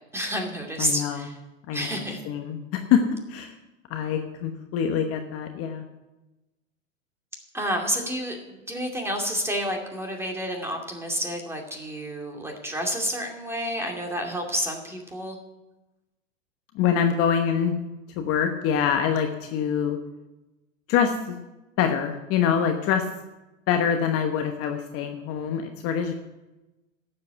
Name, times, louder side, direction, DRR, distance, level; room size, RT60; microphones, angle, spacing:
voice 1, 0.1-1.3 1.7-2.2 7.5-8.4 8.7-15.4, equal, 5° right, 2 dB, 2.4 m, -29 dB
voice 2, 0.8-1.3 1.7-3.5 3.9-5.8 16.7-17.7 18.2-20.0 20.9-21.4 21.8-23.0 23.7-26.1, left 8 dB, 35° left, 5 dB, 1.1 m, -25 dB
12.0 x 7.8 x 7.8 m, 1.0 s
hypercardioid pair, 100°, 39 cm